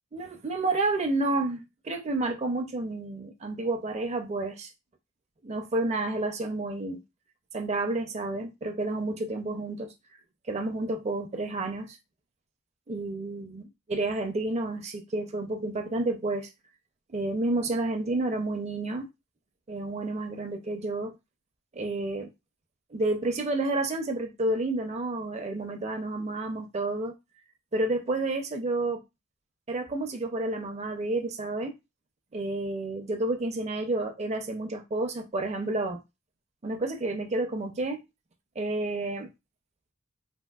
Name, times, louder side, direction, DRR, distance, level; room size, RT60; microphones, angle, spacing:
voice 1, 0.1-4.7 5.4-7.0 7.5-9.9 10.5-12.0 12.9-16.5 17.1-19.1 19.7-21.1 21.7-22.3 22.9-27.1 27.7-29.0 29.7-31.7 32.3-36.0 36.6-38.0 38.6-39.3, right 2 dB, 30° right, 0.4 m, -30 dB
3.4 x 2.5 x 2.3 m
head